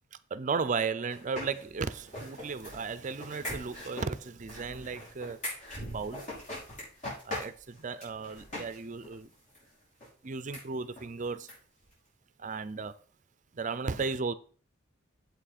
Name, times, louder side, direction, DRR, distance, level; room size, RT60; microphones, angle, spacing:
voice 1, 0.3-5.4 5.8-6.2 7.2-9.3 10.2-11.5 12.4-13.0 13.5-14.3, right 5 dB, 40° right, 0.5 m, -35 dB
sound 1, 1.1-8.8 9.0-9.1 9.5-9.6 10.0-10.1 10.5-10.6 11.0-11.1 11.5-11.6 11.8-11.9, left 1 dB, 40° left, 5.5 m, -41 dB
8.2 x 7.6 x 4.2 m
head